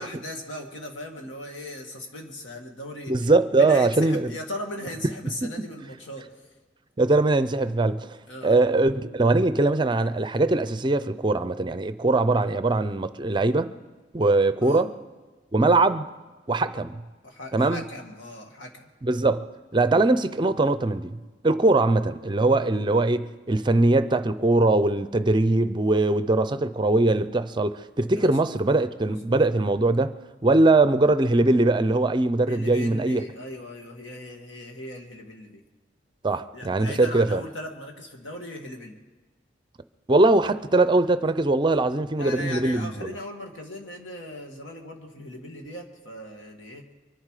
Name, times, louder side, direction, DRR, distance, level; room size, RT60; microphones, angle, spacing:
voice 1, 0.0-6.5 8.3-8.6 14.6-14.8 17.2-18.9 28.1-28.5 29.2-29.3 32.5-35.6 36.5-39.0 42.2-46.9, left 1 dB, 85° left, 2.2 m, -38 dB
voice 2, 3.1-4.3 7.0-8.1 8.4-13.7 14.1-14.9 15.5-16.1 16.5-17.0 17.5-17.8 19.0-19.4 19.7-21.1 21.4-30.1 30.4-33.2 36.2-37.4 40.1-43.1, right 2 dB, 25° right, 0.5 m, -21 dB
24.0 x 11.0 x 4.9 m
head